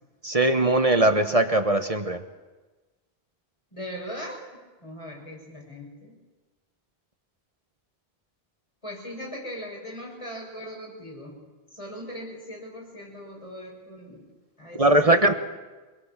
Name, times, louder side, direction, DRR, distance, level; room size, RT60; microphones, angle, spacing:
voice 1, 0.2-2.2 14.8-15.3, right 2 dB, 35° right, 7 dB, 1.2 m, -20 dB
voice 2, 3.7-4.4 4.8-6.2 8.8-11.4 11.7-14.3 14.6-15.4, equal, 30° left, -1 dB, 6.5 m, -39 dB
25.5 x 20.0 x 7.4 m, 1.2 s
omnidirectional pair, 1.1 m